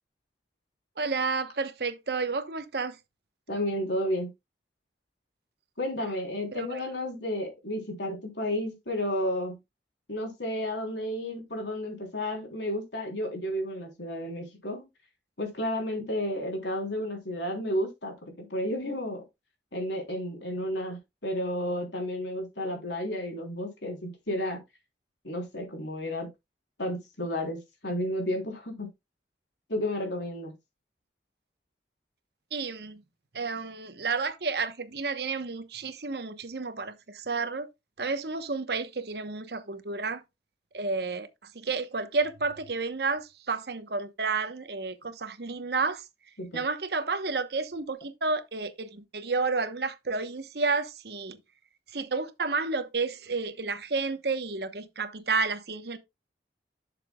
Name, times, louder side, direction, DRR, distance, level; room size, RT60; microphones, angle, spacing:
voice 1, 1.0-3.0 6.5-6.8 32.5-33.0 33.3-37.7 38.0-40.2 40.7-41.3 41.5-46.0 46.5-51.4 51.9-56.0, right 4 dB, 65° right, 1.0 m, -31 dB
voice 2, 3.5-4.3 5.8-9.6 10.1-14.8 15.4-19.2 19.7-24.6 25.2-26.3 26.8-28.9 29.7-30.5 46.4-46.6, left 1 dB, 80° left, 3.6 m, -32 dB
11.5 x 6.8 x 2.3 m
head